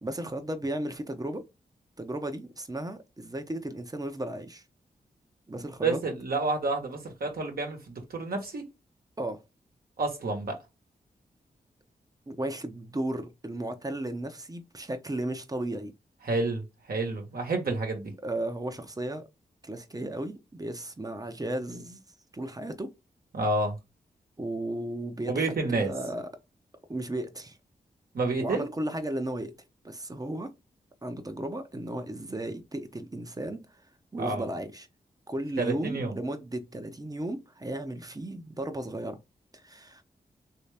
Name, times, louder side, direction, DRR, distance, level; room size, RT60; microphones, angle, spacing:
voice 1, 0.0-1.4 2.0-4.6 5.5-6.0 9.2-9.4 12.3-15.9 18.2-19.3 19.6-22.0 22.3-22.9 24.4-26.3 26.9-27.6 28.4-29.5 29.8-30.5 31.0-33.6 34.1-34.9 35.3-39.2 39.5-40.0, right 1 dB, 20° right, 0.8 m, -35 dB
voice 2, 5.6-8.7 10.0-10.6 16.2-18.1 23.3-23.8 25.3-25.9 28.1-28.7 34.2-34.5 35.6-36.1, right 3 dB, 65° right, 1.2 m, -29 dB
3.1 x 2.8 x 3.4 m
supercardioid pair, 40°, 17 cm